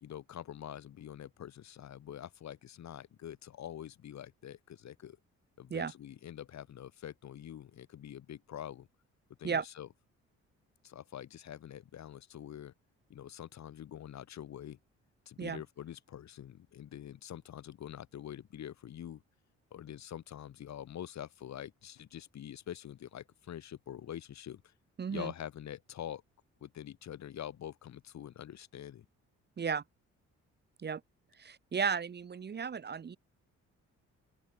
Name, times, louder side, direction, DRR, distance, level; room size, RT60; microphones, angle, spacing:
voice 1, 0.0-5.2 5.6-8.9 9.4-9.9 10.8-12.7 13.1-14.8 15.3-19.2 19.7-24.7 25.1-26.2 26.6-29.0, left 10 dB, 65° left, 2.8 m, -45 dB
voice 2, 25.0-25.3 29.6-29.8 30.8-31.0 31.4-33.2, right 6 dB, 35° right, 1.0 m, -34 dB
open air
cardioid pair, 90°, 30 cm